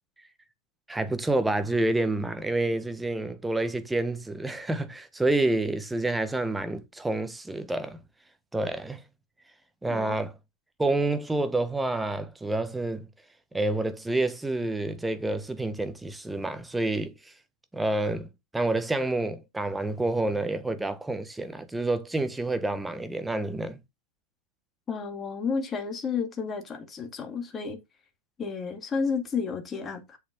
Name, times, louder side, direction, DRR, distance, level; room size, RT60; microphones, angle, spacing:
voice 1, 0.9-8.0 8.5-9.0 9.8-10.3 10.8-13.1 13.5-17.1 17.7-23.8, right 2 dB, 5° right, 1.4 m, -28 dB
voice 2, 9.9-10.2 24.9-27.8 28.4-30.2, left 5 dB, 20° left, 2.5 m, -31 dB
7.9 x 6.9 x 4.0 m
figure-of-eight pair, 90°, 0 cm